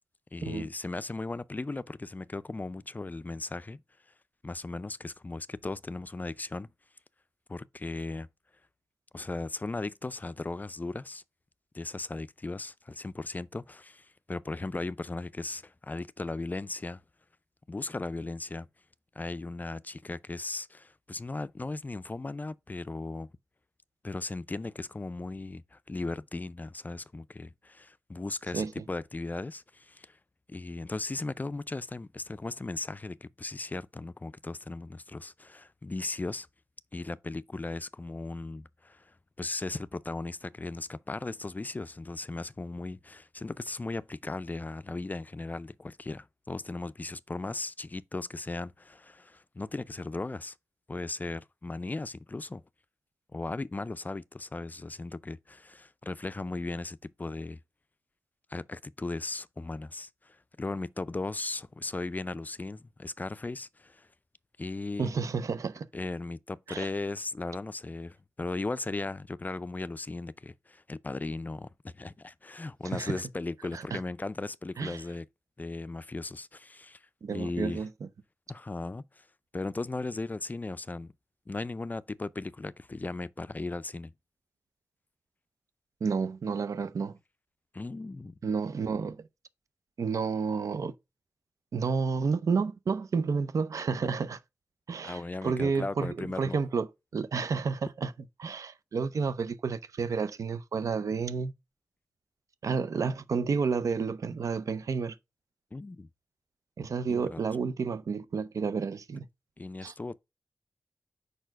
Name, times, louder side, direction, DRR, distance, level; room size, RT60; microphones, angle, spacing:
voice 1, 0.3-3.8 4.4-6.7 7.5-8.3 9.1-11.2 11.7-17.0 17.7-18.7 19.2-23.3 24.0-30.2 30.5-36.5 36.9-50.5 50.9-52.6 53.3-57.6 58.5-64.1 64.6-65.1 65.9-75.3 75.6-77.0 77.3-77.8 78.5-79.3 79.5-81.1 81.5-84.1 87.7-88.3 95.0-96.6 105.7-106.1 107.1-107.4 109.6-110.2, left 2 dB, 30° left, 0.4 m, -37 dB
voice 2, 65.0-65.9 66.7-66.9 72.8-73.2 73.7-74.0 74.8-75.0 77.2-77.9 86.0-87.2 88.4-89.2 90.0-90.9 91.7-94.4 94.9-96.9 97.1-98.1 98.4-101.5 102.6-105.2 106.8-109.3 109.8-109.9, right 5 dB, 70° right, 0.6 m, -30 dB
4.9 x 4.4 x 4.5 m
cardioid pair, 40°, 6 cm